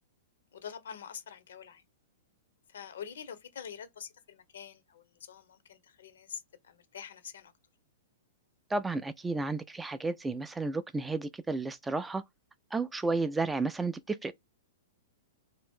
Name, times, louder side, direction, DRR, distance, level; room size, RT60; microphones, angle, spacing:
voice 1, 0.5-1.8 2.7-7.5, left 8 dB, 65° left, 0.7 m, -46 dB
voice 2, 8.7-12.2 12.7-14.3, right 3 dB, 10° right, 0.3 m, -32 dB
2.7 x 2.5 x 3.6 m
figure-of-eight pair, 110°, 0 cm